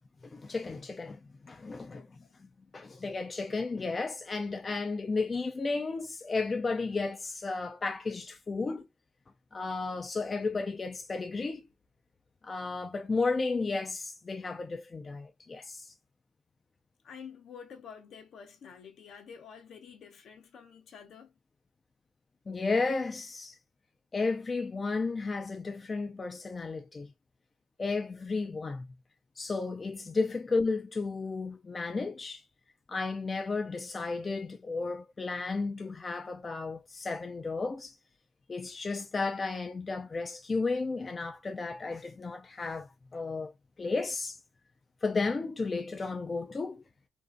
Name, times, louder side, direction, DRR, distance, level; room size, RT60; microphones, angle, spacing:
voice 1, 0.3-2.1 2.7-8.9 9.5-11.6 12.4-15.9 22.5-23.6 24.1-27.1 27.8-28.9 29.4-32.4 32.9-37.9 38.5-43.5 43.8-44.4 45.0-46.8, left 3 dB, 30° left, 0.3 m, -33 dB
voice 2, 17.0-21.3, left 7 dB, 65° left, 0.6 m, -49 dB
2.6 x 2.1 x 2.4 m
cardioid pair, 90°, 0 cm